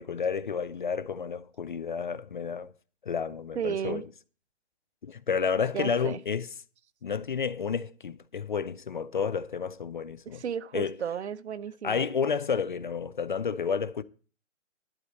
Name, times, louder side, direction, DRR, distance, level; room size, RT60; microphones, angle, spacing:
voice 1, 0.0-2.7 3.0-4.1 5.0-6.5 7.0-10.4 10.7-11.0 11.8-14.0, left 6 dB, 40° left, 0.4 m, -31 dB
voice 2, 3.6-4.0 5.7-6.2 10.3-12.1, right 8 dB, 65° right, 0.8 m, -33 dB
12.0 x 4.2 x 8.1 m
hypercardioid pair, 165°, 37 cm